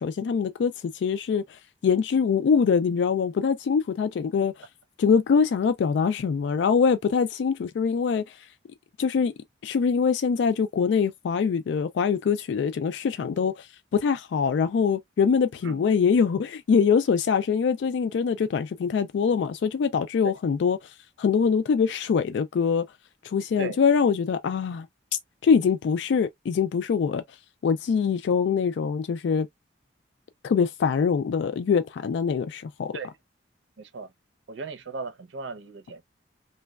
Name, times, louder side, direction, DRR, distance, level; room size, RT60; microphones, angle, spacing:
voice 1, 0.0-4.5 5.0-8.4 9.0-9.3 9.6-22.8 23.2-24.9 25.1-27.2 27.6-29.5 30.4-32.9, left 6 dB, 70° left, 0.3 m, -24 dB
voice 2, 33.8-34.1 34.5-36.0, right 4 dB, 80° right, 0.6 m, -36 dB
3.1 x 2.2 x 2.3 m
head